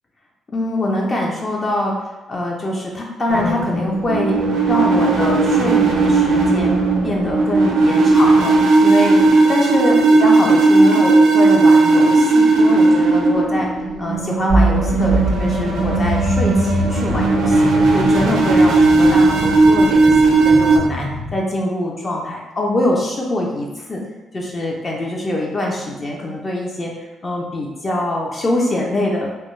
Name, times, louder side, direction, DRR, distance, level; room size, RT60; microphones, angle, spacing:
voice 1, 0.5-2.0 2.3-4.4 4.7-8.6 8.8-9.2 9.5-13.7 14.0-24.0 24.3-29.3, left 1 dB, 35° left, -2 dB, 0.4 m, -23 dB
sound 1, 3.3-20.8, right 3 dB, 90° right, 0.4 m, -15 dB
sound 2, 14.5-21.4, equal, 90° left, 1.0 m, -24 dB
2.2 x 2.1 x 3.0 m, 1.1 s
cardioid pair, 90°, 0 cm